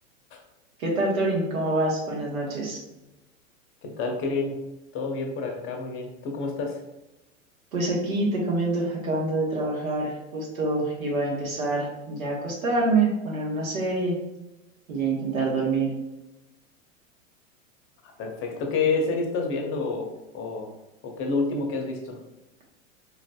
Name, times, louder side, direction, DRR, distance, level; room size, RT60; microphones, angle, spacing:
voice 1, 0.8-2.8 7.7-14.2 14.9-15.9, right 2 dB, 80° right, -2 dB, 1.3 m, -26 dB
voice 2, 3.8-4.6 4.9-6.8 18.2-20.1 20.3-20.7 21.0-22.2, left 4 dB, 30° left, 2 dB, 0.7 m, -28 dB
3.9 x 2.5 x 2.2 m, 0.97 s
hypercardioid pair, 110°, 42 cm